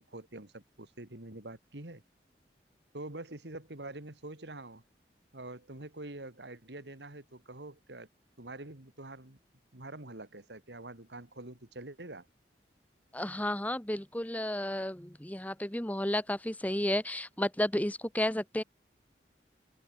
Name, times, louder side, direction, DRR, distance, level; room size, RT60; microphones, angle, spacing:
voice 1, 0.0-2.0 2.9-4.8 5.3-8.1 8.4-9.4 9.7-12.3, right 2 dB, 80° right, 2.7 m, -45 dB
voice 2, 13.1-18.6, left 1 dB, 10° left, 1.1 m, -32 dB
open air
head